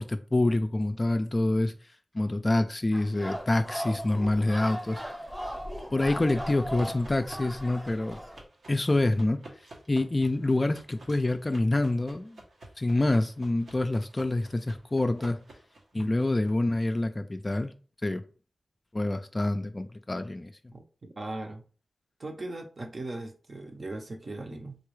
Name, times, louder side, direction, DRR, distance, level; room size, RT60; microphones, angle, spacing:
voice 1, 0.0-1.7 2.1-5.0 5.9-8.2 8.7-9.4 9.9-12.4 12.8-15.4 15.9-17.7 18.0-18.2 18.9-20.5, left 2 dB, 30° left, 0.3 m, -26 dB
sound 1, 2.9-8.4, equal, 10° right, 0.7 m, -38 dB
sound 2, 6.0-16.5, right 2 dB, 85° right, 0.9 m, -51 dB
voice 2, 15.9-16.4 20.7-20.8 21.2-21.6 22.2-24.8, right 2 dB, 45° right, 0.7 m, -38 dB
3.9 x 2.3 x 3.1 m
wide cardioid pair, 95°, 0 cm